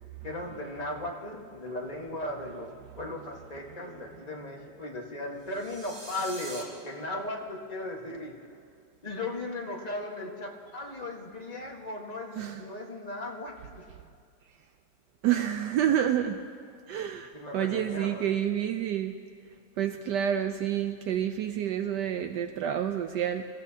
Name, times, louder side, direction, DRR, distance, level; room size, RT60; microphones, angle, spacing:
voice 1, 0.2-2.7 3.0-8.3 9.0-13.9 17.3-18.3, left 2 dB, 25° left, -1 dB, 1.4 m, -37 dB
sound 1, 5.4-6.6, right 1 dB, 40° right, 2.9 m, -43 dB
voice 2, 15.2-16.5 16.9-19.1 19.8-23.4, right 10 dB, 75° right, 7 dB, 1.1 m, -29 dB
26.0 x 14.5 x 2.8 m, 2.3 s
omnidirectional pair, 2.0 m